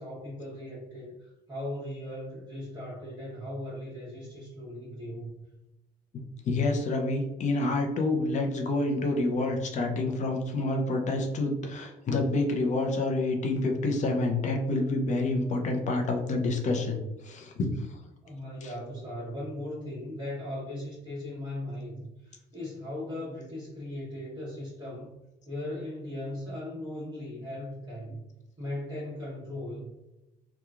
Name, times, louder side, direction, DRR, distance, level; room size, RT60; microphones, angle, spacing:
voice 1, 0.0-5.4 18.2-25.1 25.5-28.2 28.6-29.9, left 1 dB, 25° right, -9 dB, 1.2 m, -38 dB
voice 2, 6.1-17.0 17.2-17.6, left 2 dB, 45° left, 2 dB, 0.6 m, -28 dB
3.0 x 2.3 x 2.4 m, 0.95 s
cardioid pair, 110°, 17 cm